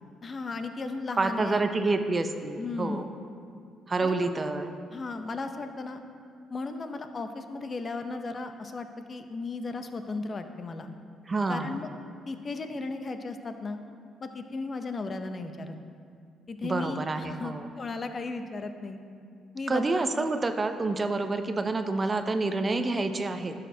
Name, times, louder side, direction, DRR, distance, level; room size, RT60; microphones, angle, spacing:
voice 1, 0.2-1.6 2.6-3.0 4.0-4.3 4.9-6.0 6.5-10.9 11.5-11.9 12.3-13.8 14.2-15.8 16.5-19.0 19.5-19.8 20.2-20.3, left 3 dB, 35° left, 7 dB, 0.6 m, -35 dB
voice 2, 1.2-3.1 3.9-4.8 11.3-11.7 16.6-17.7 19.7-23.5, right 3 dB, 25° right, 8 dB, 0.5 m, -28 dB
11.5 x 6.5 x 2.7 m, 2.4 s
cardioid pair, 100°, 0 cm